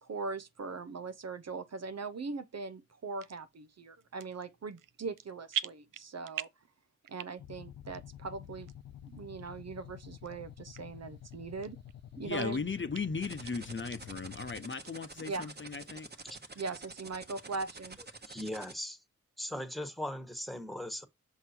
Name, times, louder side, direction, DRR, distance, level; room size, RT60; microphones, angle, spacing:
voice 1, 0.0-6.5 7.1-8.7 9.0-11.8 12.2-12.6 15.3-15.5 16.6-18.0, right 4 dB, 55° right, 0.7 m, -40 dB
sound 1, 3.2-3.4 4.0-4.5 4.8-5.2 5.5-6.7 7.0-7.6 7.9-8.0 8.7-8.8 9.4-9.5 10.2-10.3 10.7-10.8 11.3-12.0 12.4-12.5 12.9-13.0 13.3-14.0 14.4-14.5 14.8-14.9 15.3-15.8 16.2-16.3, right 10 dB, 90° right, 0.5 m, -40 dB
sound 2, 7.4-14.6, left 10 dB, 80° left, 0.5 m, -50 dB
voice 2, 12.1-16.1, left 4 dB, 40° left, 0.8 m, -37 dB
sound 3, 13.2-18.7, right 3 dB, 30° right, 1.2 m, -47 dB
voice 3, 18.3-19.0 19.4-21.0, left 1 dB, ahead, 1.5 m, -39 dB
6.2 x 3.8 x 4.5 m
cardioid pair, 55°, 31 cm